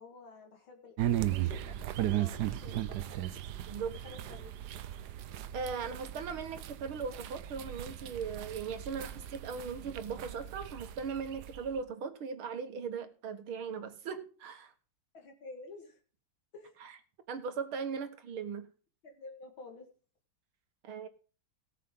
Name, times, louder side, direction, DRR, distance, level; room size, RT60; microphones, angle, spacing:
voice 1, 0.0-3.0 3.8-4.8 15.1-16.0 16.5-16.8 19.0-19.9, left 3 dB, 75° left, 3 dB, 2.8 m, -51 dB
sound 1, 1.0-11.8, right 12 dB, 65° right, 1.1 m, -37 dB
voice 2, 5.5-14.7 16.8-16.9 17.3-18.7 20.8-21.1, right 6 dB, 90° right, 8 dB, 2.3 m, -38 dB
18.0 x 7.6 x 3.7 m, 0.38 s
omnidirectional pair, 2.2 m